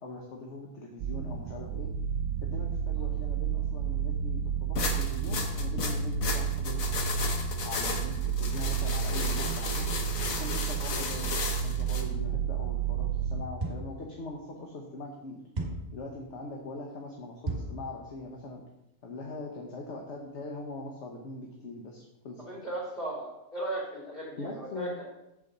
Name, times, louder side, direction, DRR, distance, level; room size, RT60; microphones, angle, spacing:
voice 1, 0.0-1.9 2.4-7.0 7.6-9.9 10.3-15.4 15.9-18.6 19.0-22.5 24.4-24.9, left 2 dB, 60° left, 0 dB, 1.3 m, -41 dB
sound 1, 1.0-13.5, right 7 dB, 80° right, 1.0 m, -31 dB
sound 2, 4.8-12.0, left 4 dB, 80° left, 1.5 m, -34 dB
sound 3, 13.6-14.0 15.6-16.0 17.5-17.8, right 2 dB, 30° right, 1.7 m, -34 dB
voice 2, 22.5-25.1, right 1 dB, 40° left, -5 dB, 3.7 m, -36 dB
8.6 x 7.6 x 4.0 m, 0.87 s
omnidirectional pair, 1.4 m